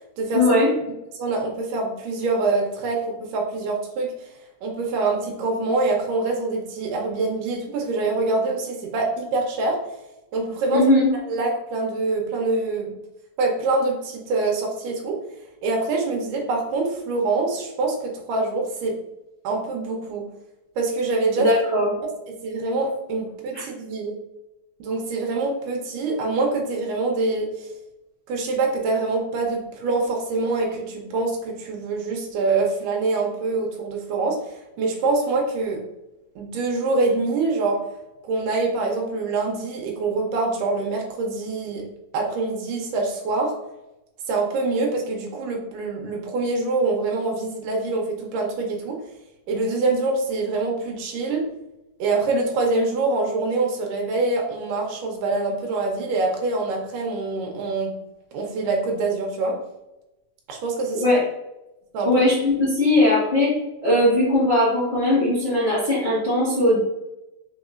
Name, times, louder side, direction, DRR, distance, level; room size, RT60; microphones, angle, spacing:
voice 1, 0.3-0.7 10.7-11.1 21.4-21.9 23.5-23.6 61.0-61.2 62.0-63.6 63.8-66.8, left 1 dB, 60° left, -9 dB, 0.6 m, -19 dB
voice 2, 1.2-4.1 4.6-9.8 10.3-10.8 11.3-12.9 13.4-15.2 15.6-19.0 19.4-20.3 20.8-21.5 22.4-24.1 24.8-27.7 28.3-35.8 36.4-37.8 38.2-41.8 42.1-43.5 44.3-49.0 49.5-51.5 52.0-57.9 58.3-59.6 60.5-61.0 61.9-62.1, right 3 dB, 80° right, 1 dB, 2.4 m, -25 dB
5.4 x 4.0 x 2.4 m, 0.97 s
omnidirectional pair, 3.8 m